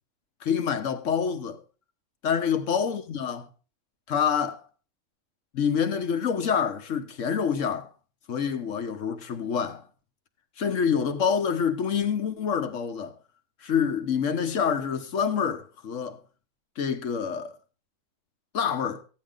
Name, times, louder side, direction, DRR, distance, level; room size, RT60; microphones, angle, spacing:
voice 1, 0.4-1.6 2.2-3.5 4.1-4.6 5.5-7.9 8.3-9.8 10.6-13.1 13.6-16.2 16.8-17.5 18.5-19.0, left 7 dB, 65° left, 1.4 m, -27 dB
14.0 x 9.5 x 3.8 m
omnidirectional pair, 1.4 m